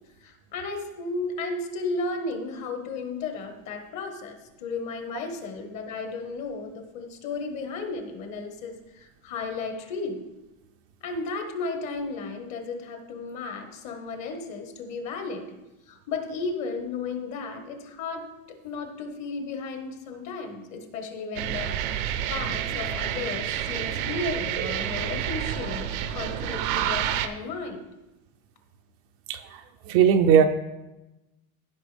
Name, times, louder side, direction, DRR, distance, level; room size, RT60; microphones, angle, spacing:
voice 1, 0.2-10.2 11.0-15.6 15.9-21.7 22.3-27.9, left 3 dB, 45° left, 4 dB, 1.5 m, -34 dB
sound 1, 21.4-27.3, right 10 dB, 90° right, 0.8 m, -29 dB
voice 2, 29.3-29.6 29.9-30.4, right 8 dB, 40° right, 6 dB, 0.4 m, -18 dB
15.0 x 5.6 x 3.4 m, 1.0 s
supercardioid pair, 155°, 39 cm